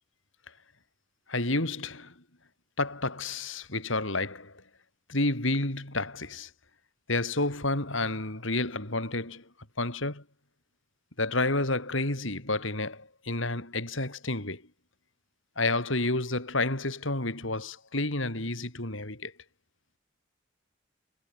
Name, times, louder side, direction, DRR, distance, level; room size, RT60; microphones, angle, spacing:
voice 1, 1.3-2.1 2.8-4.6 5.1-6.5 7.1-9.4 9.8-10.2 11.2-14.6 15.6-19.3, left 2 dB, 70° left, 5.2 m, -30 dB
head